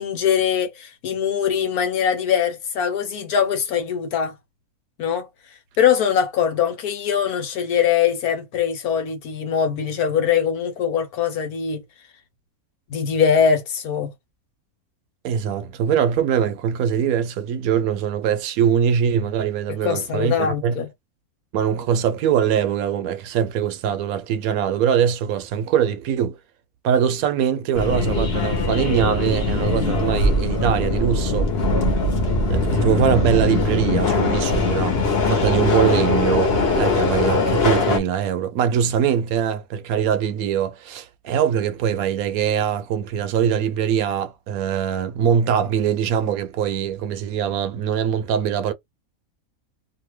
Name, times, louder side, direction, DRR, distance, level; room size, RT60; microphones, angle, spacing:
voice 1, 0.0-4.3 5.0-5.3 5.8-11.8 12.9-14.1 19.8-20.9, left 8 dB, 80° left, 1.4 m, -22 dB
voice 2, 15.2-20.7 21.5-26.4 26.8-31.5 32.5-35.0 35.3-48.7, right 8 dB, 75° right, 1.0 m, -22 dB
Subway metro underground, 27.7-38.0, left 3 dB, 45° left, 1.0 m, -21 dB
2.7 x 2.5 x 3.0 m
omnidirectional pair, 1.6 m